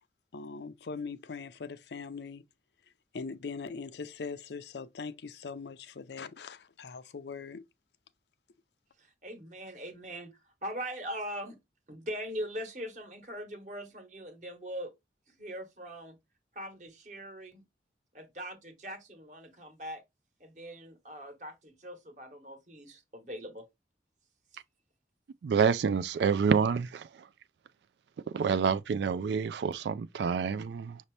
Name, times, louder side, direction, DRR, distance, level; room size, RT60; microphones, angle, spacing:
voice 1, 0.3-2.4 3.1-7.6, left 4 dB, 75° left, 0.5 m, -41 dB
voice 2, 9.0-10.3 10.6-11.6 11.9-14.9 15.3-16.2 16.5-17.6 18.1-20.0 20.4-23.7, equal, 45° right, 1.2 m, -41 dB
voice 3, 25.4-27.1 28.3-31.0, right 6 dB, 75° right, 0.3 m, -27 dB
5.9 x 2.8 x 3.2 m
head